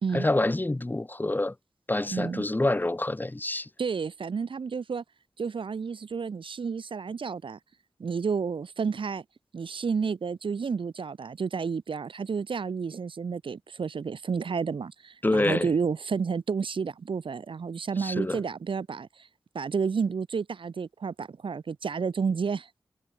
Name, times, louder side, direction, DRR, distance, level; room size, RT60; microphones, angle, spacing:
voice 1, 0.1-1.5 1.9-3.7 15.2-15.7 18.0-18.4, left 2 dB, 20° left, 1.8 m, -27 dB
voice 2, 2.1-2.5 3.8-5.0 5.4-7.6 8.0-9.2 9.5-19.3 19.5-22.7, right 5 dB, 80° right, 5.1 m, -31 dB
wide cardioid pair, 75°, 9 cm